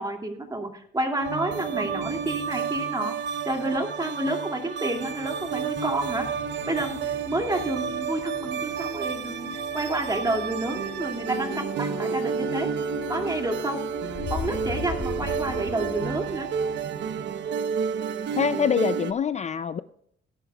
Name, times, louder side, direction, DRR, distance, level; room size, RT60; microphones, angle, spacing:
voice 1, 0.0-3.1 3.4-6.3 6.7-12.7 13.1-13.8 14.3-16.5, right 2 dB, 20° right, 3 dB, 2.4 m, -29 dB
sound 1, 1.2-19.1, right 7 dB, 65° right, 0.8 m, -31 dB
sound 2, 4.9-18.4, left 5 dB, 55° left, 2.1 m, -39 dB
voice 2, 18.3-19.8, left 7 dB, 35° left, 13 dB, 0.4 m, -25 dB
17.0 x 11.0 x 2.3 m, 0.66 s
cardioid pair, 90°, 20 cm